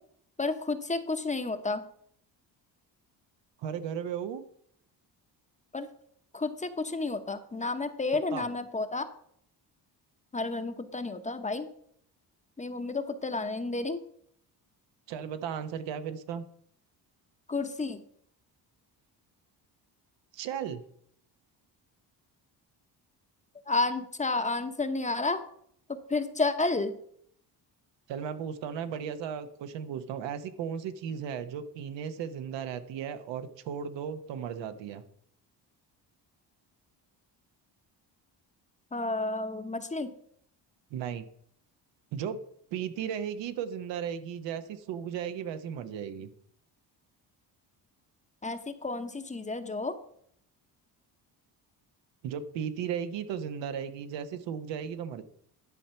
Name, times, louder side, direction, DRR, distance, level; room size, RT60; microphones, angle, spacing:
voice 1, 0.4-1.8 5.7-5.9 6.3-9.1 10.3-11.7 12.6-14.0 17.5-18.0 23.7-25.4 25.9-27.0 38.9-40.1 48.4-50.0, left 3 dB, 15° left, 9 dB, 0.8 m, -31 dB
voice 2, 3.6-4.4 8.3-8.4 15.1-16.4 20.3-20.8 28.1-35.0 40.9-41.3 42.1-42.4 42.7-46.3 52.2-55.2, right 8 dB, 85° right, 10 dB, 0.9 m, -35 dB
11.0 x 4.4 x 6.9 m, 0.67 s
cardioid pair, 110°, 43 cm